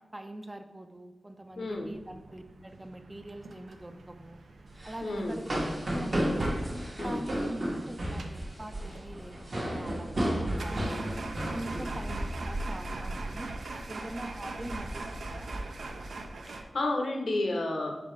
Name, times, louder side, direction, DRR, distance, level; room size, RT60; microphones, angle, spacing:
voice 1, 0.1-4.4 4.8-5.5 5.9-6.4 7.0-10.9 11.5-13.5 13.9-15.5, right 1 dB, 20° right, 7 dB, 0.3 m, -43 dB
voice 2, 1.6-1.9 5.0-5.4 7.0-7.2 16.5-18.0, left 2 dB, 80° left, 2 dB, 0.7 m, -31 dB
sound 1, 1.7-16.6, right 2 dB, 85° right, 0.4 m, -42 dB
sound 2, 4.7-12.8 13.0-13.3 13.7-14.0 14.5-15.6, right 1 dB, 45° right, 0.9 m, -33 dB
4.2 x 3.8 x 3.1 m, 1.1 s
wide cardioid pair, 100°, 0 cm